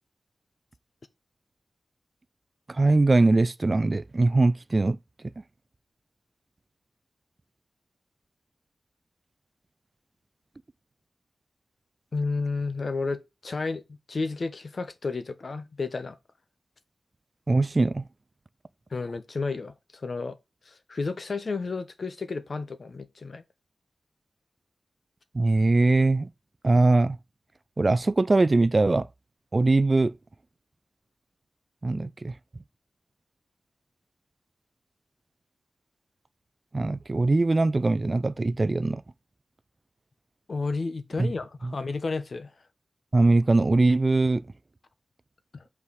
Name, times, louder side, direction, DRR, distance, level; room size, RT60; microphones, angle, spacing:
voice 1, 2.7-5.0 17.5-18.0 25.3-26.3 26.6-27.2 27.8-29.1 29.5-30.1 31.8-32.3 36.7-39.0 41.2-41.3 43.1-44.4, right 2 dB, 35° right, 0.4 m, -21 dB
voice 2, 12.1-13.8 14.1-16.2 18.9-20.4 20.7-23.4 40.5-42.5 45.5-45.6, left 3 dB, 55° left, 1.0 m, -32 dB
5.8 x 4.7 x 6.4 m
wide cardioid pair, 90°, 0 cm